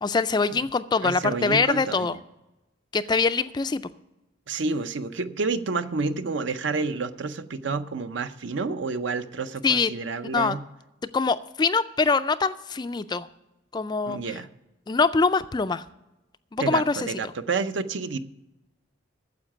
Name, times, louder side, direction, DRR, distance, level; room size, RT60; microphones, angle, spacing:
voice 1, 0.0-2.2 2.9-3.8 9.6-9.9 10.3-10.6 11.1-13.3 13.7-14.2 14.9-15.8 16.5-17.3, left 4 dB, 20° left, 13 dB, 0.3 m, -24 dB
voice 2, 1.0-2.1 4.5-10.6 14.0-14.5 16.6-18.2, right 4 dB, 65° right, 11 dB, 0.6 m, -29 dB
9.6 x 7.3 x 8.7 m, 0.98 s
head